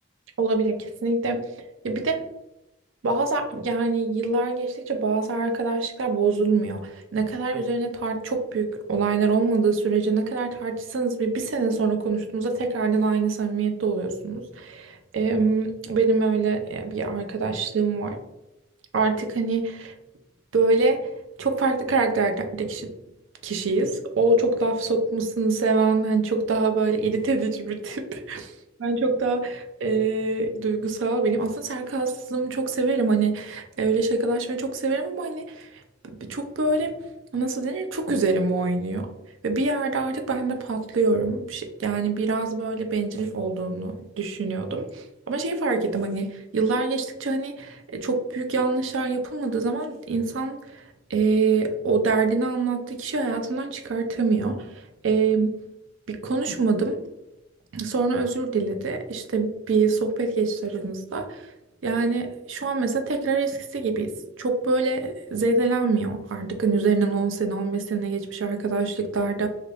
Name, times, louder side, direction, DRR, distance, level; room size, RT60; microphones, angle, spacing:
voice 1, 0.4-1.5 1.8-2.2 3.0-18.2 18.9-19.9 20.5-21.0 21.4-22.9 23.4-28.5 28.8-35.7 36.2-36.9 37.3-39.1 39.4-50.8 51.1-55.5 56.1-57.0 57.7-61.5 61.8-69.5, right 3 dB, 85° right, 5 dB, 0.5 m, -25 dB
2.8 x 2.5 x 3.3 m, 0.92 s
head